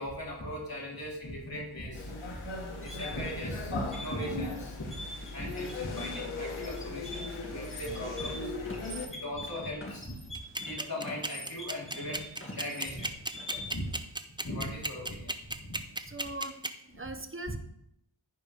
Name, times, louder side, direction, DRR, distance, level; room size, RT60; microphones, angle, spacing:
voice 1, 0.0-2.4 2.8-4.9 5.3-8.5 9.1-10.1 10.6-12.2 12.5-13.1 13.6-13.9 14.4-15.3 15.7-15.8, left 1 dB, 45° left, -4 dB, 3.4 m, -38 dB
sound 1, 1.9-9.1, left 3 dB, 80° left, 1.4 m, -38 dB
sound 2, 2.7-13.9, left 1 dB, 25° left, 2.2 m, -44 dB
sound 3, 10.3-16.7, right 2 dB, 10° right, 0.5 m, -33 dB
voice 2, 16.0-17.6, right 2 dB, 25° right, 7 dB, 1.0 m, -41 dB
15.0 x 5.3 x 3.3 m, 0.78 s
wide cardioid pair, 75°, 48 cm